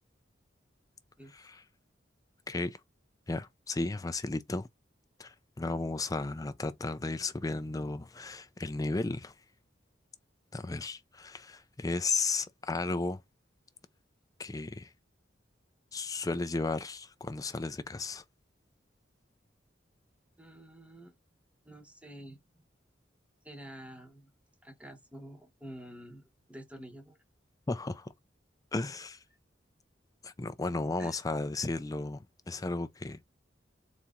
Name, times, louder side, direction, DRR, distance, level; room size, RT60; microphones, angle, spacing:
voice 1, 2.5-2.8 3.3-4.7 5.2-9.3 10.5-13.2 14.4-14.9 15.9-18.2 27.7-28.1 28.7-29.2 30.2-33.2, left 3 dB, 20° left, 0.4 m, -34 dB
voice 2, 20.4-21.2 21.6-22.4 23.4-24.3 24.6-27.2 31.0-31.2, right 1 dB, 5° right, 0.9 m, -48 dB
4.1 x 2.9 x 3.6 m
head